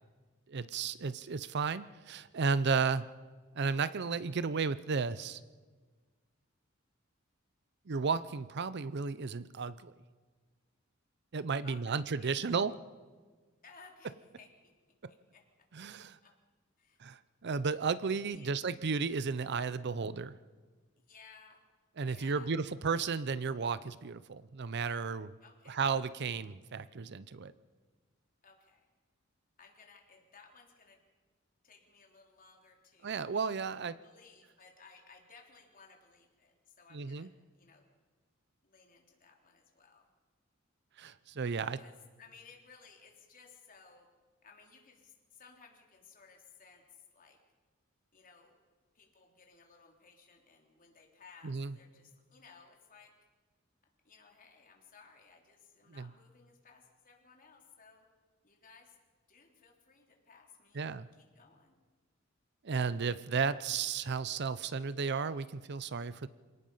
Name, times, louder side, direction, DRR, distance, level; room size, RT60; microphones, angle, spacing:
voice 1, 0.5-3.1 3.6-5.4 7.9-9.9 11.3-12.7 15.7-16.2 17.0-20.3 22.0-25.4 25.7-27.5 33.0-34.0 36.9-37.3 41.0-41.8 51.4-51.8 55.9-56.1 60.7-61.1 62.6-66.3, right 5 dB, 55° right, 16 dB, 0.6 m, -33 dB
voice 2, 11.6-12.3 13.6-14.7 15.1-15.4 16.2-16.3 16.8-17.0 18.3-18.6 21.1-21.6 22.0-22.5 25.4-25.8 28.4-28.9 29.6-31.0 31.6-33.2 34.0-37.8 38.6-40.1 41.6-41.9 42.2-44.1 44.4-47.4 48.1-48.5 48.9-53.1 54.0-58.1 58.4-59.0 59.3-61.8, left 5 dB, 45° left, 1 dB, 3.6 m, -59 dB
27.0 x 18.0 x 5.6 m, 1.4 s
head